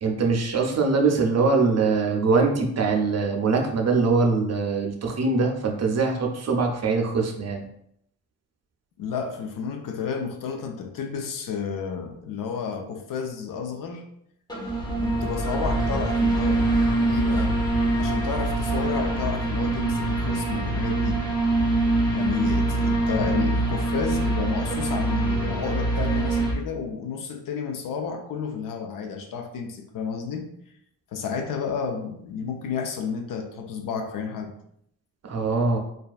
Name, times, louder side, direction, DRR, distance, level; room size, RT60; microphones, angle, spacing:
voice 1, 0.0-7.6 35.2-35.8, right 4 dB, 40° right, 1 dB, 0.5 m, -22 dB
voice 2, 9.0-14.0 15.0-16.7 17.0-17.6 18.0-21.2 22.1-30.5 31.1-34.5, left 6 dB, 55° left, 4 dB, 0.5 m, -31 dB
sound 1, 14.5-26.5, right 2 dB, 10° left, 0.6 m, -24 dB
2.3 x 2.2 x 2.3 m, 0.72 s
supercardioid pair, 50°, 41 cm